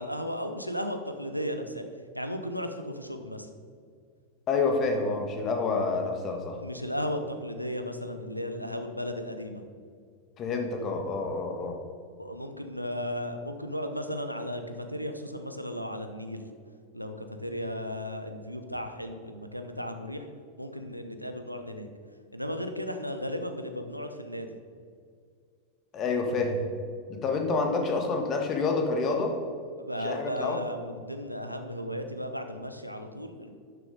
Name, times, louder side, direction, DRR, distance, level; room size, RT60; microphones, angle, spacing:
voice 1, 0.0-1.8 2.1-3.5 6.6-9.6 12.2-16.5 16.9-20.3 20.6-21.9 22.3-24.5 29.8-33.6, equal, 90° right, 6 dB, 0.7 m, -35 dB
voice 2, 4.5-6.6 10.4-11.7 25.9-26.6 27.1-29.3 30.0-30.6, left 3 dB, 30° left, 3 dB, 1.6 m, -28 dB
12.0 x 6.5 x 3.9 m, 2.2 s
figure-of-eight pair, 90°, 0 cm